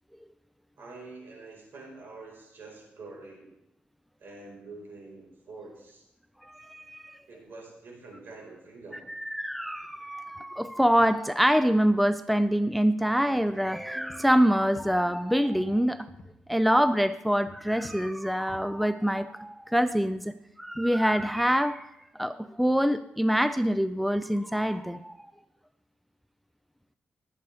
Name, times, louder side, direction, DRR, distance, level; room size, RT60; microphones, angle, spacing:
voice 1, 0.8-3.5 4.2-6.0 7.3-9.1, right 3 dB, 70° right, -1 dB, 4.8 m, -46 dB
voice 2, 6.4-7.2 9.1-16.1 16.5-25.3, equal, ahead, 12 dB, 0.4 m, -25 dB
sound 1, 13.8-15.2 15.5-16.4 17.4-19.3 19.6-21.8, left 3 dB, 55° left, 1.8 m, -51 dB
19.5 x 8.1 x 3.5 m, 0.85 s
cardioid pair, 105°, 4 cm